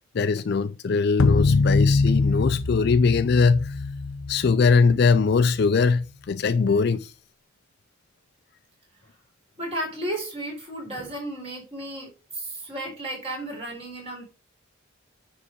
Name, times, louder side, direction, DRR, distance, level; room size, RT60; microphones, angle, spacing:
voice 1, 0.2-3.7 4.3-7.1, left 4 dB, 50° left, 0.4 m, -21 dB
sound 1, 1.2-5.7, left 3 dB, 80° left, 0.8 m, -23 dB
voice 2, 9.6-14.2, right 1 dB, 30° right, 4.1 m, -33 dB
9.8 x 3.8 x 5.3 m
head